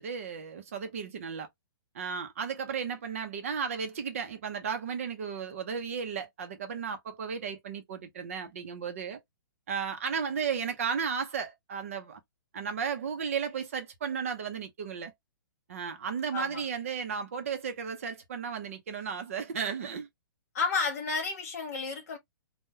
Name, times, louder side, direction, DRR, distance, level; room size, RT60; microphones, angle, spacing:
voice 1, 0.0-1.5 1.9-9.2 9.7-12.2 12.5-15.1 15.7-20.1, right 6 dB, 40° right, 0.7 m, -34 dB
voice 2, 20.5-22.2, left 4 dB, 40° left, 1.5 m, -31 dB
3.7 x 2.2 x 2.6 m
hypercardioid pair, 175°, 12 cm